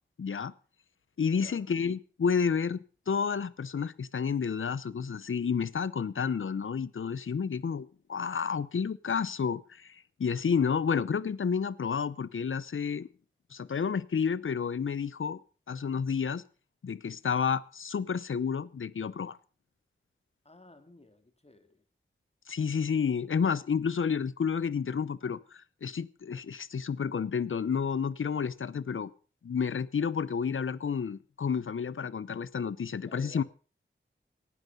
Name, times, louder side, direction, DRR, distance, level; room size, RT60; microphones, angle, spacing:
voice 1, 0.2-0.5 1.2-2.8 3.1-13.1 13.5-15.4 15.7-16.4 16.8-19.4 22.5-29.1 29.4-33.4, left 6 dB, 80° left, 0.8 m, -30 dB
voice 2, 1.3-1.7 20.4-21.8 33.0-33.5, left 2 dB, 30° left, 3.2 m, -54 dB
18.5 x 12.0 x 5.4 m
wide cardioid pair, 50°, 20 cm